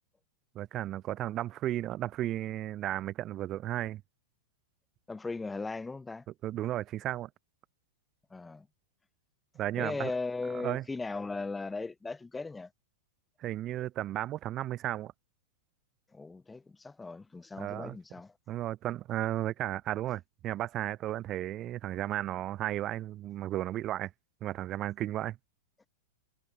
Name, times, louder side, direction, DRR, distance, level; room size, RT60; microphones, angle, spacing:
voice 1, 0.5-4.0 6.4-7.3 9.6-10.1 10.6-10.8 13.4-15.1 17.6-18.0 18.5-24.1 24.4-25.4, right 13 dB, 35° right, 0.5 m, -34 dB
voice 2, 5.1-6.2 8.3-8.7 9.8-12.7 16.1-18.3, left 3 dB, 10° left, 2.4 m, -37 dB
figure-of-eight pair, 100°, 0 cm